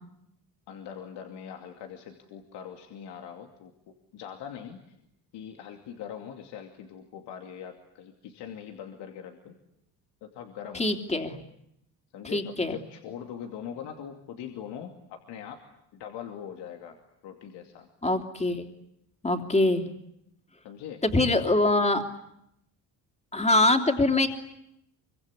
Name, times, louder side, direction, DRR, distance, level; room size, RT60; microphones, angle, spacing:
voice 1, 0.7-3.7 4.1-5.0 5.3-9.5 10.2-10.8 12.1-15.6 15.9-17.9 20.6-21.0, left 8 dB, 90° left, 4 dB, 2.7 m, -42 dB
voice 2, 10.7-11.4 12.3-12.8 18.0-18.6 19.2-19.8 21.0-22.0 23.3-24.3, left 2 dB, 15° left, 5 dB, 3.3 m, -23 dB
25.0 x 24.5 x 9.8 m, 0.78 s
cardioid pair, 105°, 40 cm